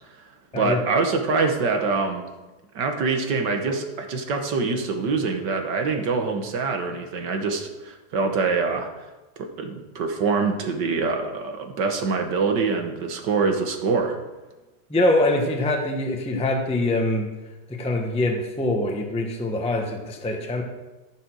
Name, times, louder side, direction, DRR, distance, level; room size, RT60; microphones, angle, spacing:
voice 1, 0.5-2.2 2.8-8.9 9.4-14.2, right 4 dB, 60° right, 5 dB, 1.8 m, -24 dB
voice 2, 14.9-17.3 17.7-20.6, left 1 dB, 5° left, 2 dB, 0.8 m, -24 dB
13.5 x 6.8 x 6.3 m, 1.1 s
omnidirectional pair, 2.3 m